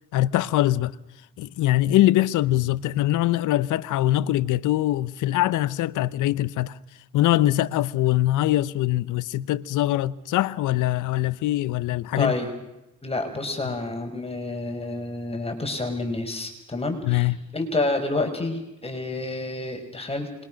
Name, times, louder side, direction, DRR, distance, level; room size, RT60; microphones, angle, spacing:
voice 1, 0.1-0.9 1.4-6.8 7.1-12.3 17.0-17.4, left 15 dB, 85° left, 0.8 m, -22 dB
voice 2, 12.2-12.5 13.0-20.3, left 2 dB, 20° left, 5.7 m, -29 dB
27.0 x 22.5 x 6.4 m
cardioid pair, 90°, 30 cm